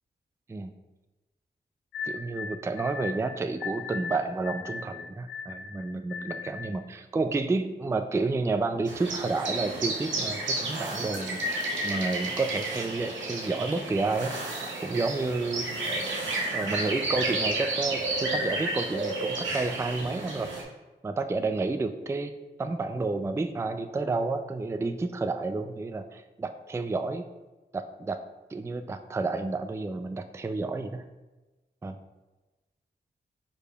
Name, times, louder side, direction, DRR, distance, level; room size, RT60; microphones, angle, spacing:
sound 1, 1.9-6.8, left 5 dB, 90° left, 0.4 m, -38 dB
voice 1, 2.0-15.7 16.5-20.5 21.0-22.3 22.6-27.3 27.7-28.2 28.5-31.0 31.8-32.0, right 3 dB, 15° right, 9 dB, 0.3 m, -30 dB
sound 2, 8.9-20.6, right 2 dB, 90° right, 0.8 m, -31 dB
4.9 x 4.7 x 2.3 m, 1.1 s
cardioid pair, 45°, 19 cm